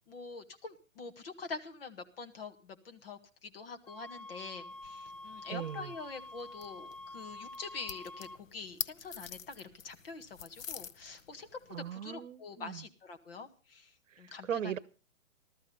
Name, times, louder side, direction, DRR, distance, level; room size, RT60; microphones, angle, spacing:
voice 1, 0.1-11.5 11.8-14.7, left 4 dB, 45° left, 1.7 m, -45 dB
sound 1, 3.9-8.4, left 2 dB, 30° left, 0.6 m, -48 dB
sound 2, 4.7-11.9, left 8 dB, 85° left, 0.9 m, -47 dB
voice 2, 5.5-5.9 11.7-12.8 14.5-14.8, right 9 dB, 70° right, 0.9 m, -38 dB
15.0 x 13.0 x 5.4 m
hypercardioid pair, 175°, 39 cm